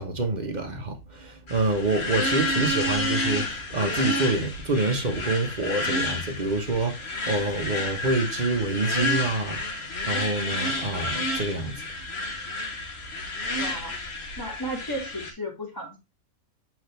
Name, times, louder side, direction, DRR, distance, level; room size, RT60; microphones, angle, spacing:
voice 1, 0.0-9.6 10.0-11.8, right 2 dB, 35° right, 1.2 m, -27 dB
sound 1, 1.5-15.3, left 1 dB, 50° left, 1.4 m, -30 dB
voice 2, 13.5-14.0 14.4-16.0, equal, 15° left, 2.0 m, -35 dB
7.7 x 4.0 x 3.3 m
omnidirectional pair, 1.5 m